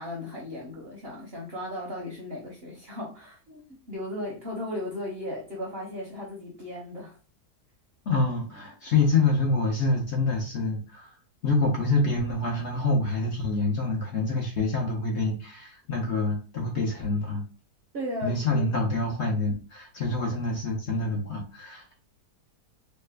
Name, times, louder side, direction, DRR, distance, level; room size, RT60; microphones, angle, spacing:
voice 1, 0.0-3.6 3.9-7.1 17.9-18.6, left 1 dB, 50° right, -1 dB, 0.8 m, -36 dB
voice 2, 8.1-11.2 11.4-17.4 18.2-21.9, left 3 dB, 60° left, -1 dB, 0.8 m, -26 dB
3.2 x 2.1 x 3.3 m, 0.36 s
omnidirectional pair, 1.7 m